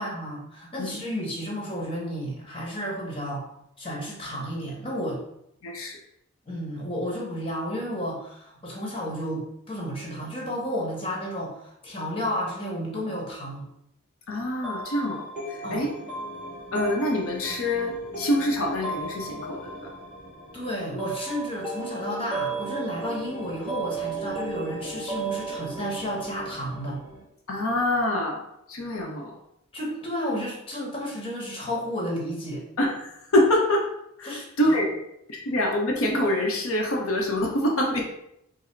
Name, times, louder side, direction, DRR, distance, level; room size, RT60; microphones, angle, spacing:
voice 1, 0.0-3.5 3.8-5.2 6.5-13.7 15.6-15.9 20.5-27.0 29.7-32.6 34.2-34.7, equal, 25° left, -3 dB, 1.1 m, -32 dB
voice 2, 5.6-6.0 14.3-15.9 16.7-19.9 27.5-29.4 32.8-33.9 34.2-35.0 35.3-38.0, left 1 dB, 80° left, 0 dB, 0.8 m, -26 dB
sound 1, 14.6-27.2, right 2 dB, 5° right, 1.5 m, -35 dB
4.7 x 2.0 x 4.4 m, 0.77 s
head